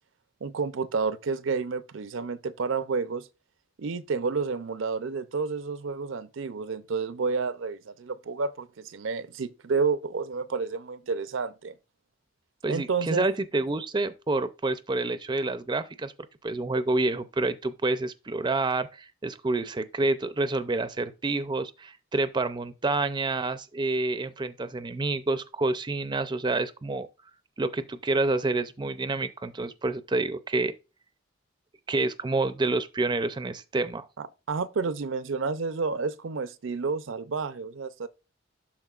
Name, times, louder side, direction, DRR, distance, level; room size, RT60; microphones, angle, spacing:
voice 1, 0.4-3.3 3.8-11.7 12.7-13.3 34.2-38.1, right 4 dB, 75° right, 0.5 m, -30 dB
voice 2, 12.6-16.1 16.4-27.1 27.6-30.7 31.9-34.1, right 2 dB, 25° right, 0.5 m, -28 dB
12.0 x 4.3 x 2.4 m
head